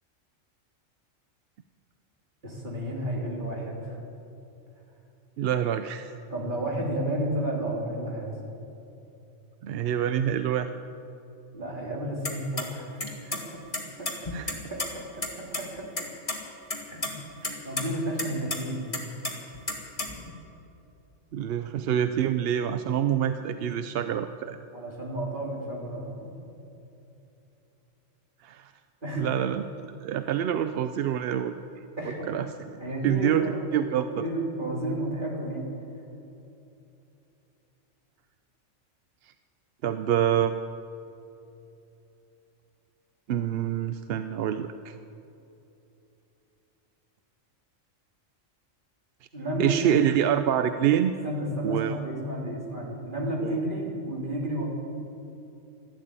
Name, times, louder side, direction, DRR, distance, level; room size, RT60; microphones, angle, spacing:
voice 1, 2.4-4.0 6.3-8.3 11.5-13.6 13.9-14.3 14.7-16.0 16.9-17.2 17.6-18.9 24.7-26.3 29.0-29.3 32.0-32.3 32.8-33.6 34.0-35.7 49.3-50.1 51.2-54.6, right 1 dB, 40° right, -3 dB, 3.4 m, -32 dB
voice 2, 5.4-6.1 9.6-10.7 14.3-14.6 17.4-17.6 21.3-24.6 28.4-28.7 29.2-29.6 30.0-31.5 32.3-32.5 33.0-33.5 33.7-34.2 39.8-40.5 43.3-44.9 49.6-51.1 51.6-52.0 53.4-53.6, right 10 dB, 65° right, 10 dB, 0.7 m, -26 dB
sound 1, 12.2-12.6 13.0-13.4 13.7-14.9 15.2-15.3 15.5-15.6 16.0-16.4 16.7-17.1 17.4-17.8 18.2-18.6 18.9-20.3, left 2 dB, 25° left, 1.9 m, -31 dB
13.0 x 12.5 x 8.8 m, 2.9 s
omnidirectional pair, 1.3 m